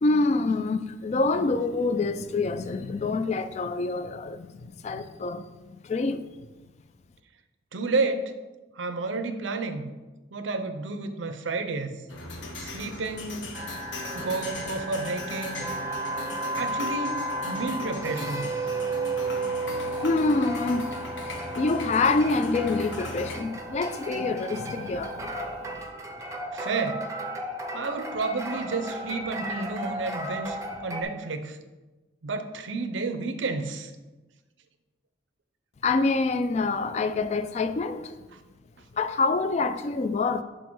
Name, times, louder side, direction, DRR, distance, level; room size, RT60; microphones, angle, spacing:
voice 1, 0.0-6.3 20.0-25.4 35.8-38.2 38.9-40.4, left 3 dB, 35° left, 0.3 m, -26 dB
voice 2, 7.7-8.3 8.7-9.9 10.3-12.0 12.6-13.6 14.1-15.7 16.5-18.5 26.5-27.1 27.7-31.6 32.2-33.9, right 3 dB, 80° right, 0.6 m, -31 dB
sound 1, 12.1-23.4, left 2 dB, 80° left, 1.1 m, -39 dB
sound 2, 13.5-31.0, right 1 dB, 15° right, 0.6 m, -33 dB
6.3 x 3.9 x 4.6 m
head